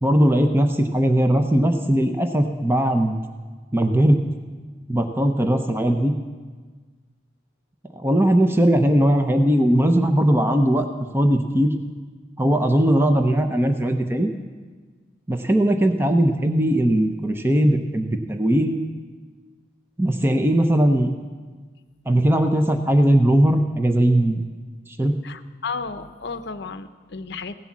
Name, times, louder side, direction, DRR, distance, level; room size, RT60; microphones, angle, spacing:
voice 1, 0.0-3.2 3.7-4.2 4.9-6.1 7.9-10.9 11.1-11.7 12.4-14.3 15.3-18.8 20.0-21.1 22.1-24.5 24.9-25.1, right 1 dB, 10° right, 6 dB, 0.7 m, -19 dB
voice 2, 25.2-27.5, left 4 dB, 60° left, 10 dB, 0.7 m, -33 dB
16.5 x 11.0 x 7.4 m, 1.4 s
head